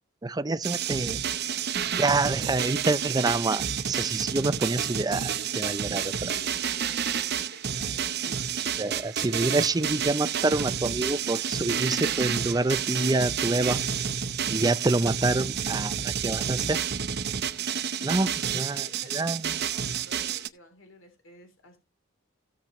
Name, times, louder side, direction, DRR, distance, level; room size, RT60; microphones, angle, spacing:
voice 1, 0.2-1.2 2.0-6.3 8.8-13.8 14.5-16.8 18.0-18.9 19.1-19.5, right 2 dB, 20° right, 0.5 m, -27 dB
sound 1, 0.6-20.5, right 8 dB, 55° right, 0.8 m, -30 dB
voice 2, 6.3-8.6 18.3-21.8, left 1 dB, 75° left, 3.1 m, -52 dB
16.0 x 7.2 x 3.0 m
head